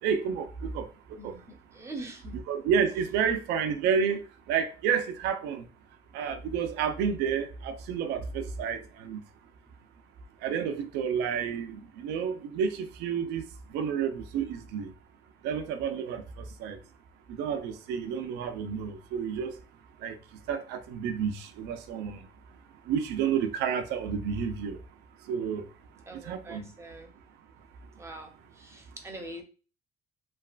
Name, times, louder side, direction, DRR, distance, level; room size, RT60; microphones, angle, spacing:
voice 1, 0.0-1.4 2.3-5.7 6.1-9.2 10.4-14.9 15.4-16.8 17.3-19.6 20.0-20.2 20.5-22.3 22.9-24.8 25.3-25.7 26.1-26.7, right 7 dB, 90° right, 0.5 m, -30 dB
voice 2, 1.2-2.4 26.1-27.1 28.0-29.4, right 2 dB, 15° right, 0.7 m, -43 dB
3.2 x 2.3 x 2.3 m
cardioid pair, 110°, 17 cm